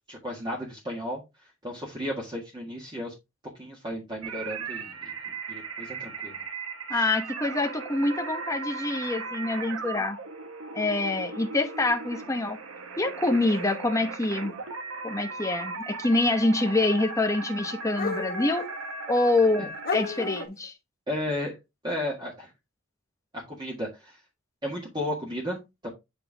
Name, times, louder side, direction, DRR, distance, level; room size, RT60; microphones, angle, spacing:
voice 1, 0.1-1.2 1.6-3.1 3.6-5.1 5.5-6.4 6.9-7.0 19.6-19.7 21.1-21.6 21.8-22.5 23.3-24.2 24.6-25.9, left 1 dB, 20° right, 1.8 m, -34 dB
sound 1, 4.2-20.5, right 4 dB, 85° right, 1.4 m, -38 dB
voice 2, 6.9-10.2 10.7-12.6 13.0-14.5 15.0-18.7 19.1-20.7, left 2 dB, 15° left, 1.1 m, -26 dB
sound 2, 10.9-11.0 12.4-12.5 13.5-13.7 16.2-16.3 17.9-18.7 19.4-19.5 19.8-20.7, left 4 dB, 45° left, 0.9 m, -32 dB
8.1 x 4.6 x 3.4 m
head